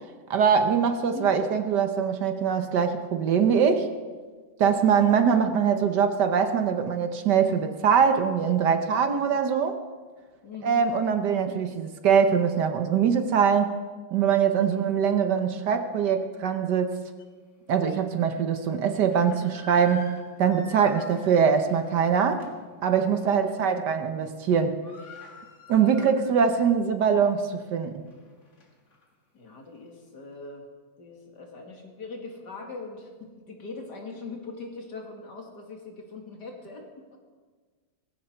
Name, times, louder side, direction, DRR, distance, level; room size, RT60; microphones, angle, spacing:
voice 1, 0.3-3.9 4.6-9.8 10.6-13.7 14.1-17.1 17.7-20.1 20.4-22.4 22.8-24.8 25.7-28.0, right 7 dB, 65° right, 8 dB, 1.5 m, -23 dB
voice 2, 0.9-1.3 10.4-10.8 14.6-14.9 23.1-23.6 29.3-30.7 31.0-37.2, left 3 dB, 60° left, 1 dB, 2.7 m, -41 dB
sound 1, 17.2-17.3 17.9-18.0 18.9-22.7 23.1-23.3 23.7-24.1 24.3-24.4 24.6-26.6 27.0-27.1 27.7-29.0, left 1 dB, 40° left, 2.1 m, -47 dB
18.0 x 16.0 x 4.5 m, 1.5 s
omnidirectional pair, 2.1 m